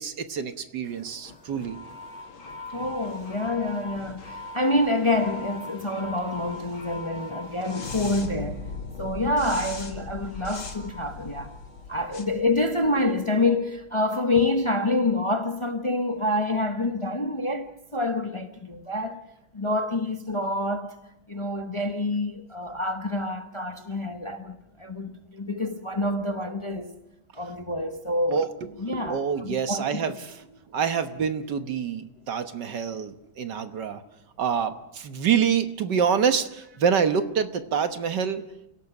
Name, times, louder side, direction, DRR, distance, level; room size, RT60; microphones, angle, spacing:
voice 1, 0.0-1.8 28.3-28.5 28.9-30.3 30.7-34.0 34.4-38.4, right 7 dB, 60° right, 1.7 m, -26 dB
sound 1, 0.8-13.2, left 3 dB, 75° left, 3.1 m, -39 dB
voice 2, 2.7-8.7 9.0-11.5 11.9-19.2 19.5-21.0 21.3-26.9 27.3-28.5 28.8-30.2, left 2 dB, 30° left, 0.5 m, -27 dB
29.0 x 17.5 x 6.0 m
omnidirectional pair, 2.2 m